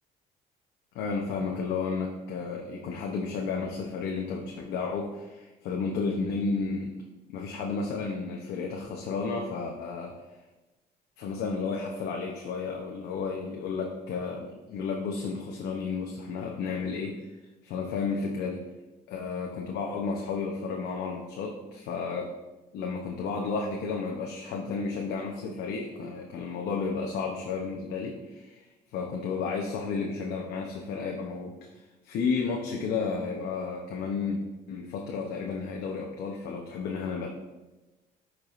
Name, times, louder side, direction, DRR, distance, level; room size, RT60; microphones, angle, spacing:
voice 1, 0.9-6.9 7.3-10.1 11.2-17.3 17.6-18.6 19.1-22.3 22.7-28.7 28.9-34.4 34.7-37.3, left 4 dB, 75° left, 0 dB, 0.8 m, -32 dB
10.5 x 4.7 x 2.5 m, 1.1 s
cardioid pair, 110°, 17 cm